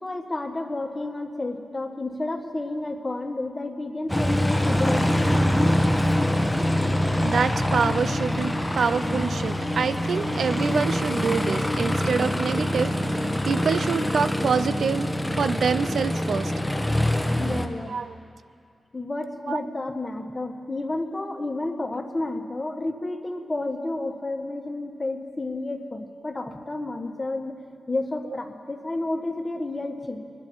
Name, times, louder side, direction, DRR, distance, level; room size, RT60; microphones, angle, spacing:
voice 1, 0.0-5.5 17.4-18.0 18.9-27.6 27.9-30.2, left 2 dB, 35° left, 4 dB, 1.7 m, -31 dB
Aircraft, 4.1-17.7, left 1 dB, 5° left, 1.4 m, -24 dB
voice 2, 7.2-16.5 17.9-18.1 19.5-19.6, right 6 dB, 75° right, 13 dB, 0.4 m, -26 dB
20.5 x 10.5 x 4.7 m, 2.4 s
supercardioid pair, 40°, 0 cm